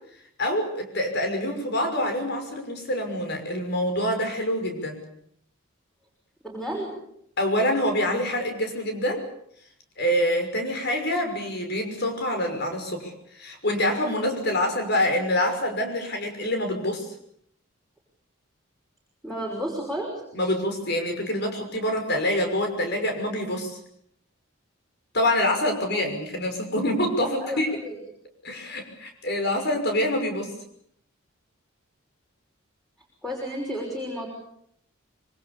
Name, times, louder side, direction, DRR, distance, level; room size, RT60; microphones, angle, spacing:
voice 1, 0.4-5.0 7.4-9.2 10.0-17.1 20.3-23.8 25.1-27.7 28.4-30.5, left 1 dB, 55° left, 5 dB, 6.0 m, -26 dB
voice 2, 6.4-7.0 19.2-20.2 25.9-26.0 27.2-28.0 33.2-34.3, equal, ahead, -1 dB, 5.8 m, -32 dB
26.5 x 24.0 x 6.9 m, 0.71 s
head